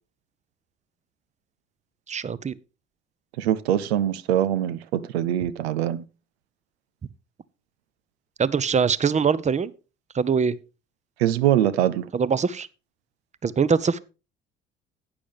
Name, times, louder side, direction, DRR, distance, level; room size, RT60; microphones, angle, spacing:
voice 1, 2.1-2.6 8.4-9.7 10.1-10.6 12.1-12.7 13.4-14.0, right 6 dB, 20° right, 0.7 m, -23 dB
voice 2, 3.4-6.0 11.2-12.0, right 11 dB, 80° right, 0.5 m, -23 dB
11.5 x 8.8 x 3.4 m
hypercardioid pair, 50°, 31 cm